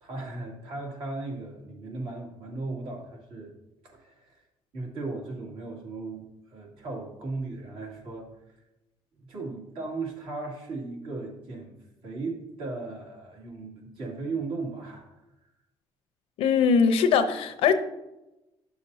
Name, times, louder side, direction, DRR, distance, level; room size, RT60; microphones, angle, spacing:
voice 1, 0.0-3.5 3.8-4.4 4.7-6.2 6.5-8.6 9.2-11.8 12.0-15.5, right 3 dB, 65° right, 2.5 m, -37 dB
voice 2, 16.4-17.7, left 6 dB, 80° left, 0.8 m, -21 dB
10.5 x 6.8 x 2.7 m
cardioid pair, 115°, 10 cm